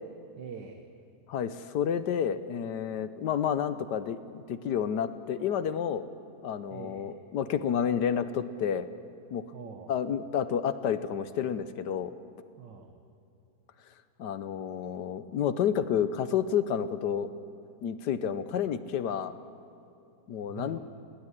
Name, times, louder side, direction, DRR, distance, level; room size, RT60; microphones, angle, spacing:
voice 1, 0.4-0.8 6.7-7.1 9.5-9.9 12.6-13.0 20.5-20.8, right 6 dB, 85° right, 5 dB, 1.9 m, -44 dB
voice 2, 1.3-6.0 6.4-8.9 9.3-9.4 9.9-12.1 14.2-17.3 17.8-19.3 20.3-20.8, left 8 dB, 75° left, 12 dB, 1.4 m, -30 dB
20.0 x 17.5 x 9.8 m, 2.8 s
omnidirectional pair, 1.9 m